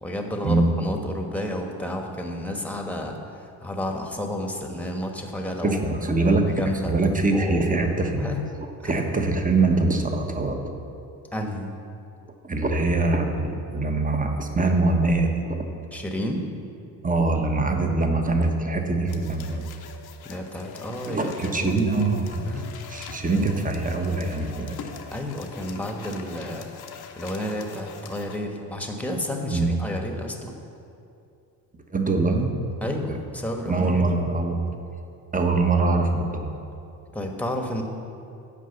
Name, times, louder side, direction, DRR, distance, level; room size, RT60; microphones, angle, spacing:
voice 1, 0.0-5.8 6.2-6.9 7.3-7.7 8.2-8.4 8.8-9.0 11.3-11.7 15.9-16.5 20.2-22.7 25.1-26.7 27.2-30.5 32.8-34.2 37.1-37.8, left 1 dB, 5° left, 3 dB, 1.3 m, -31 dB
voice 2, 5.6-8.2 8.8-10.7 12.4-15.7 17.0-19.6 21.1-22.4 22.9-24.9 29.5-29.7 31.9-32.5 33.1-33.2 33.7-34.6 35.3-36.5, right 3 dB, 15° right, 4 dB, 1.1 m, -23 dB
sound 1, 19.1-28.4, left 7 dB, 55° left, 1.0 m, -43 dB
8.4 x 5.4 x 6.9 m, 2.6 s
supercardioid pair, 65°, 46 cm